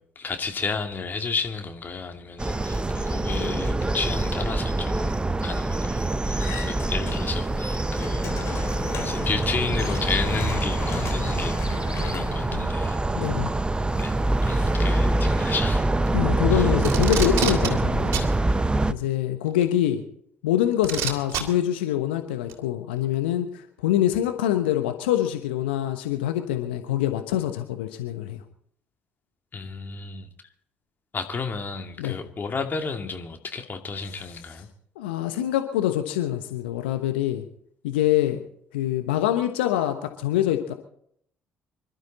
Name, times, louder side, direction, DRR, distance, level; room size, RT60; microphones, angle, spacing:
voice 1, 0.0-5.1 5.4-8.7 9.0-13.3 14.0-15.9 16.5-16.7 29.5-30.3 31.1-34.7, left 4 dB, 35° left, 5 dB, 2.4 m, -32 dB
sound 1, 2.4-18.9, right 2 dB, 15° right, 0.8 m, -25 dB
sound 2, 6.4-7.5 7.8-13.2, left 5 dB, 50° left, 4.7 m, -36 dB
voice 2, 13.1-13.5 14.5-14.7 16.1-18.3 18.9-20.0 20.4-28.4 32.0-32.2 35.0-37.4 37.8-38.4 38.7-40.7, left 12 dB, 75° left, 7 dB, 1.1 m, -25 dB
Packing tape duct tape, 16.8-17.7 18.1-18.3 19.6-19.7 20.8-21.4 22.5-22.6, right 9 dB, 60° right, 3.1 m, -26 dB
25.5 x 12.5 x 4.2 m, 0.67 s
figure-of-eight pair, 50°, 6 cm